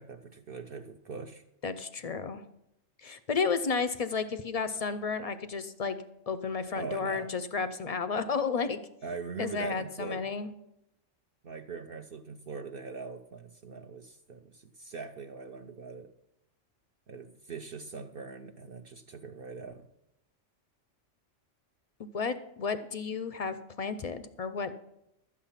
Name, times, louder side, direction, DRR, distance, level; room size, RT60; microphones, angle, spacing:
voice 1, 0.0-1.4 6.7-7.3 9.0-10.3 11.4-16.1 17.1-19.9, right 4 dB, 55° right, 6 dB, 0.7 m, -42 dB
voice 2, 1.6-2.4 3.0-6.0 6.3-8.8 9.4-10.5 22.1-24.7, left 5 dB, 50° left, 12 dB, 0.4 m, -32 dB
12.5 x 8.5 x 5.7 m, 0.84 s
omnidirectional pair, 1.3 m